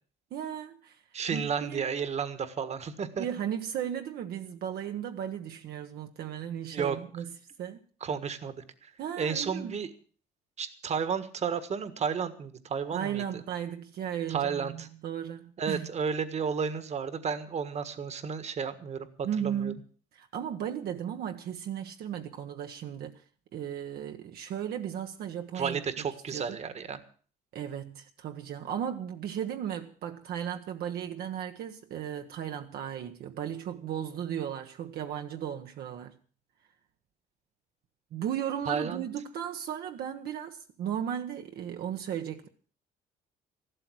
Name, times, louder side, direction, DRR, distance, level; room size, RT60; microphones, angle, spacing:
voice 1, 0.3-1.0 1.3-1.9 3.2-7.3 7.6-7.8 9.0-9.7 12.9-15.9 19.2-19.8 20.1-23.2 23.5-25.8 26.3-26.5 27.5-36.1 38.1-42.5, right 9 dB, 65° right, 1.2 m, -35 dB
voice 2, 1.1-3.2 6.7-7.0 8.0-8.9 9.2-9.9 10.6-13.4 14.3-14.9 15.6-19.7 25.5-27.0 38.7-39.0, right 6 dB, 40° right, 1.5 m, -32 dB
14.0 x 12.5 x 6.2 m
cardioid pair, 110°, 17 cm